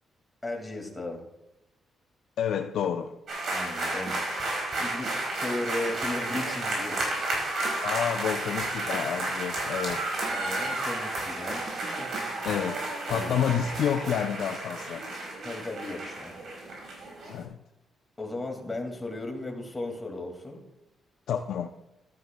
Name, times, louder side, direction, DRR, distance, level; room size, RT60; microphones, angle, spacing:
voice 1, 0.4-1.2 3.5-4.3 4.8-5.1 5.4-7.0 10.3-11.6 13.1-13.5 15.4-16.3 18.2-20.6, left 2 dB, 15° left, 1 dB, 2.1 m, -35 dB
voice 2, 2.4-3.2 7.8-10.0 12.4-15.0 17.3-17.6 21.3-21.7, left 8 dB, 80° left, 5 dB, 0.5 m, -29 dB
sound 1, 3.3-17.4, right 2 dB, 60° right, 4.6 m, -32 dB
sound 2, 4.1-14.2, right 4 dB, 40° right, 1.0 m, -45 dB
15.0 x 12.0 x 2.2 m, 0.96 s
cardioid pair, 135°, 0 cm